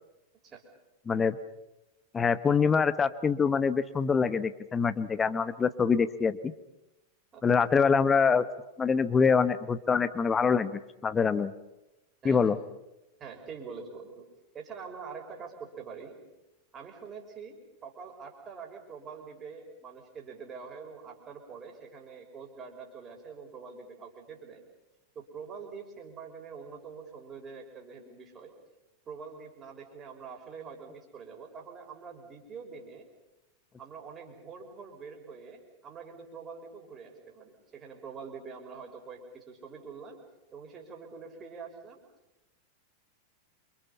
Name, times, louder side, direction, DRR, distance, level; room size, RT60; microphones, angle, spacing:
voice 1, 1.1-1.4 2.1-6.5 7.4-8.4 8.8-11.5 12.2-12.6, left 5 dB, 20° left, 13 dB, 1.1 m, -25 dB
voice 2, 12.2-12.6 13.2-14.3 14.5-16.2 16.7-24.7 25.1-28.5 29.1-33.1 33.8-40.2 40.5-42.0, right 5 dB, 25° right, 2 dB, 5.8 m, -45 dB
28.5 x 26.5 x 5.7 m, 0.97 s
figure-of-eight pair, 90°, 0 cm